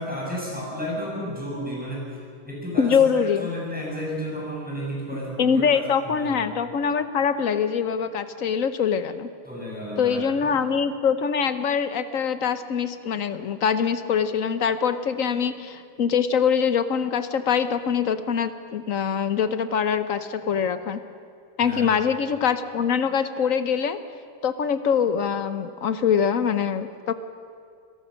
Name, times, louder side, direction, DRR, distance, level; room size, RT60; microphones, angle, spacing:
voice 1, 0.0-6.5 9.4-10.5 21.6-21.9, equal, 5° right, -4 dB, 7.1 m, -33 dB
voice 2, 2.8-3.5 5.4-9.3 10.0-21.0 21.6-24.0 24.4-27.1, left 7 dB, 55° left, 11 dB, 1.0 m, -23 dB
26.0 x 17.5 x 6.5 m, 2.3 s
omnidirectional pair, 2.1 m